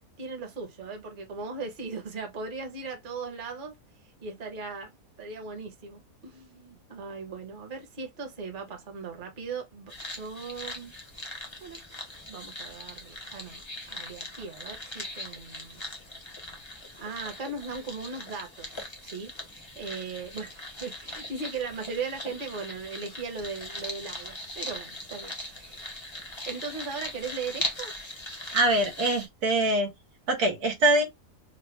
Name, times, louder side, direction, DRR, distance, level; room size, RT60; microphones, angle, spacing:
voice 1, 0.2-3.8 4.2-10.9 11.6-11.8 12.3-15.8 17.0-25.9 26.4-27.9, right 4 dB, 40° right, 1.0 m, -38 dB
sound 1, 9.9-29.3, left 1 dB, 25° left, 0.7 m, -40 dB
voice 2, 28.5-29.9 30.3-31.0, right 1 dB, 90° right, 1.5 m, -23 dB
3.9 x 2.1 x 3.2 m
omnidirectional pair, 1.6 m